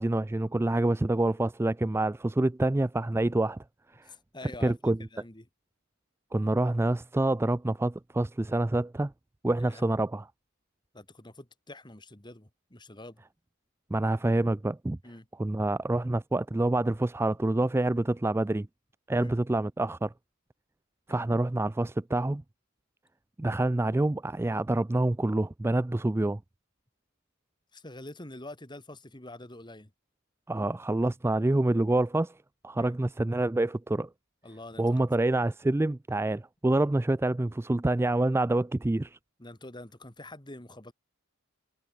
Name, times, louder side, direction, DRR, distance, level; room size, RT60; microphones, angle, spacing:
voice 1, 0.0-3.6 4.0-4.1 4.6-5.0 6.3-9.1 9.4-10.3 13.9-15.0 15.4-18.7 19.1-20.1 21.1-22.4 23.4-26.4 30.5-32.3 32.6-34.1 34.8-39.2, right 2 dB, 10° right, 0.3 m, -27 dB
voice 2, 4.0-5.5 9.6-9.8 10.9-13.2 15.0-15.3 19.1-19.3 21.1-21.3 27.7-29.9 32.7-33.0 34.4-34.9 39.4-40.9, left 2 dB, 20° left, 2.5 m, -46 dB
head